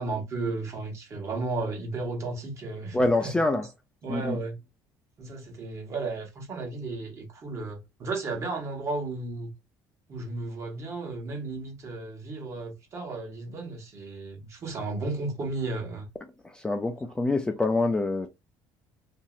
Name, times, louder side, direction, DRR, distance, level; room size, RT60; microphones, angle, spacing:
voice 1, 0.0-3.3 4.0-4.6 5.2-9.5 10.1-16.1, right 3 dB, 40° right, 1.1 m, -34 dB
voice 2, 2.9-3.7 4.1-4.4 16.4-18.3, left 2 dB, 10° left, 0.3 m, -26 dB
2.9 x 2.7 x 2.3 m
cardioid pair, 140°, 8 cm